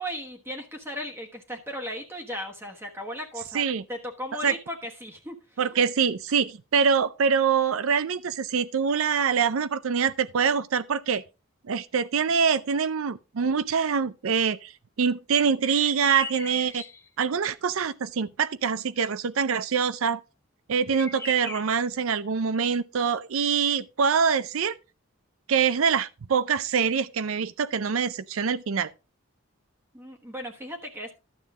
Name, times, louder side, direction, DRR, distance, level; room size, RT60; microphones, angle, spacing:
voice 1, 0.0-5.4 29.9-31.1, equal, 10° right, 1.2 m, -36 dB
voice 2, 5.6-11.2 11.7-14.7 15.0-16.8 17.2-20.2 20.7-24.8 25.5-28.9, right 6 dB, 75° right, 0.5 m, -24 dB
sound 1, 15.6-17.1 20.9-21.9, left 4 dB, 10° left, 0.6 m, -39 dB
12.0 x 7.2 x 3.6 m
head